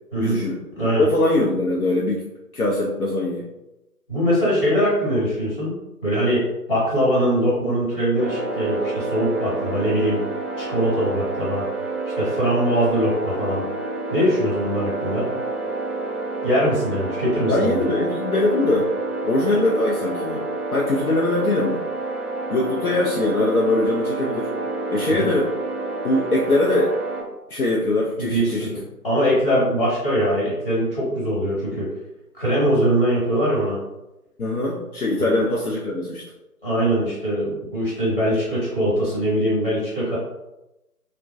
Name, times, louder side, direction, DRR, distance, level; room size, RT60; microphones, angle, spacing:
voice 1, 0.2-0.6 1.0-2.2 2.5-3.5 17.5-18.9 19.2-21.8 22.5-24.5 24.9-25.5 26.0-27.0 27.5-28.7 34.4-36.2, left 2 dB, 70° left, -4 dB, 0.6 m, -22 dB
voice 2, 4.1-5.8 6.0-10.2 10.6-11.6 12.2-13.7 14.1-15.3 16.4-17.9 25.2-25.3 28.2-31.9 32.3-33.8 35.2-35.4 36.6-40.2, equal, 35° left, -8 dB, 1.2 m, -22 dB
sound 1, 8.1-27.2, right 2 dB, 45° right, 0.6 m, -29 dB
2.4 x 2.1 x 2.5 m, 0.95 s
figure-of-eight pair, 155°, 46 cm